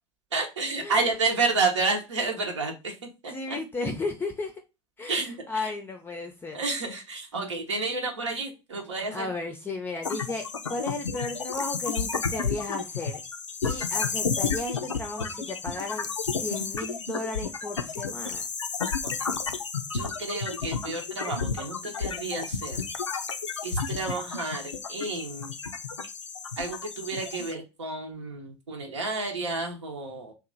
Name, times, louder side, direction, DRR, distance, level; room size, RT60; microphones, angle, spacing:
voice 1, 0.3-3.0 3.2-3.6 5.1-5.7 6.5-9.3 19.0-19.1 19.9-22.8 23.6-25.5 26.6-30.3, right 3 dB, 75° right, 2 dB, 0.8 m, -30 dB
voice 2, 3.3-4.5 5.0-6.6 9.1-13.2 13.6-16.1 16.4-18.4, left 3 dB, 15° left, 4 dB, 0.5 m, -34 dB
sound 1, 10.0-27.5, left 5 dB, 80° left, 0.4 m, -32 dB
3.0 x 2.4 x 3.7 m, 0.27 s
figure-of-eight pair, 75°, 15 cm